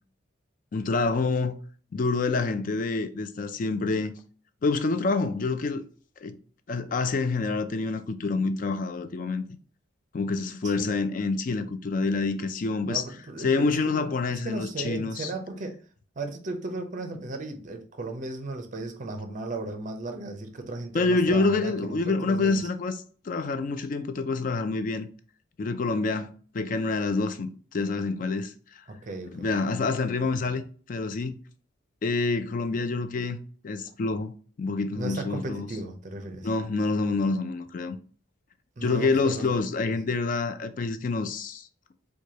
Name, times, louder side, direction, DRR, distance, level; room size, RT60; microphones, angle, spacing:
voice 1, 0.7-1.6 1.9-4.1 4.6-5.8 6.2-6.4 6.7-9.4 10.1-13.0 13.4-15.3 20.9-23.0 23.2-25.1 25.6-28.5 29.3-30.6 30.9-31.4 32.0-33.4 33.6-34.3 34.6-35.7 36.4-38.0 38.8-41.7, left 3 dB, 40° left, 0.3 m, -27 dB
voice 2, 12.8-15.8 16.2-22.7 28.9-29.5 35.0-36.5 38.8-39.5 39.8-39.9, right 2 dB, 40° right, 0.5 m, -36 dB
4.6 x 2.2 x 2.8 m
head